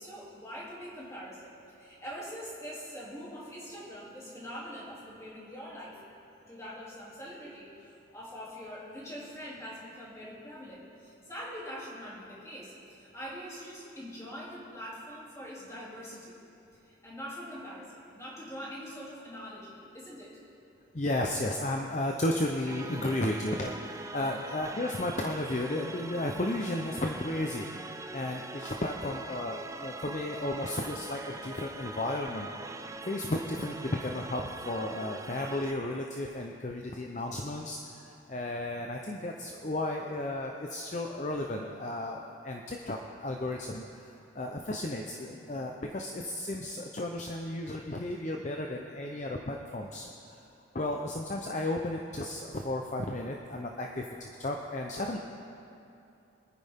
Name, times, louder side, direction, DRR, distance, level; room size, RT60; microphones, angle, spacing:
voice 1, 0.0-6.0 6.5-16.3 16.8-20.4, equal, 15° left, -6 dB, 2.9 m, -43 dB
voice 2, 20.9-27.7 28.1-32.5 33.1-50.1 50.7-55.2, left 1 dB, 35° left, 1 dB, 0.7 m, -34 dB
sound 1, 22.7-35.7, right 2 dB, 15° right, 0.4 m, -43 dB
25.5 x 9.7 x 3.6 m, 2.7 s
head